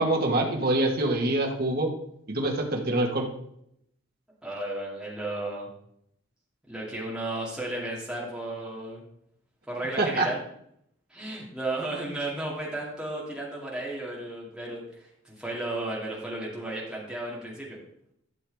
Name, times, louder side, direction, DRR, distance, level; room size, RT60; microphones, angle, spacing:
voice 1, 0.0-1.9 2.3-3.3 10.0-10.3, right 2 dB, 45° right, 1 dB, 1.4 m, -25 dB
voice 2, 4.4-5.7 6.6-9.0 9.7-10.4 11.1-17.8, right 2 dB, 5° right, -5 dB, 2.4 m, -34 dB
12.0 x 6.7 x 3.5 m, 0.73 s
head